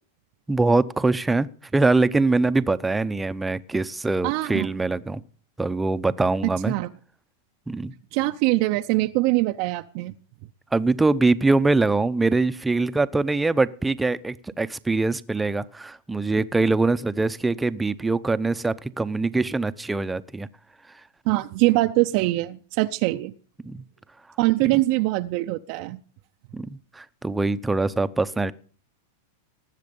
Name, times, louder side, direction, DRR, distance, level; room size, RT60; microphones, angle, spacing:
voice 1, 0.5-1.5 1.7-5.2 5.6-6.7 7.7-7.9 10.7-20.5 23.6-23.8 26.5-28.5, right 3 dB, 10° right, 0.7 m, -23 dB
voice 2, 4.2-4.7 6.7-6.9 8.1-10.1 21.3-23.3 24.4-26.0, right 19 dB, 55° right, 0.6 m, -23 dB
19.0 x 7.5 x 5.3 m
hypercardioid pair, 115°, 0 cm